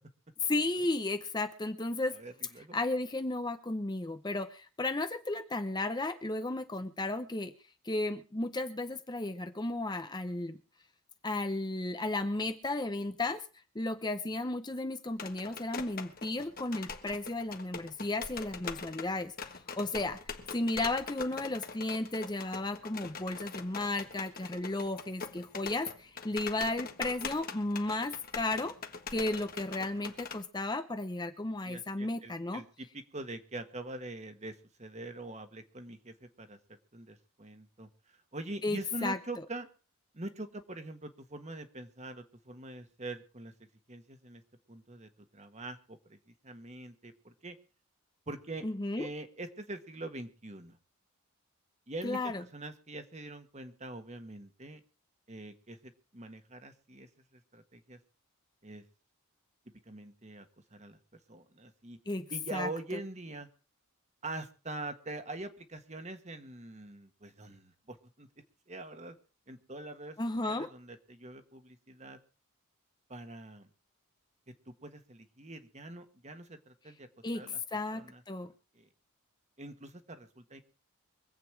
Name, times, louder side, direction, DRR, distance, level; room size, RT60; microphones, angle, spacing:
voice 1, 0.4-2.2 2.7-7.5 7.8-10.6 11.2-13.4 13.7-20.2 20.5-28.7 29.1-32.6 38.6-39.2 48.6-49.1 52.0-52.4 62.1-62.3 62.5-62.7 70.2-70.7 77.2-77.4 77.7-78.5, left 2 dB, 20° left, 9 dB, 0.7 m, -34 dB
voice 2, 2.1-2.8 6.8-6.9 31.6-36.6 36.9-39.7 40.1-43.5 43.9-44.4 44.7-47.6 48.3-48.6 49.0-50.8 51.9-54.8 55.3-58.0 58.6-58.8 59.8-60.5 60.7-61.0 61.3-62.0 62.3-63.5 64.2-68.3 68.7-69.1 69.5-70.2 70.4-72.2 73.1-73.7 74.7-77.1 77.3-77.6 77.9-78.2 78.7-78.9 79.6-80.6, right 2 dB, 30° right, 8 dB, 1.5 m, -44 dB
sound 1, 15.1-30.4, left 5 dB, 40° left, 1.4 m, -43 dB
24.5 x 8.3 x 4.7 m, 0.37 s
head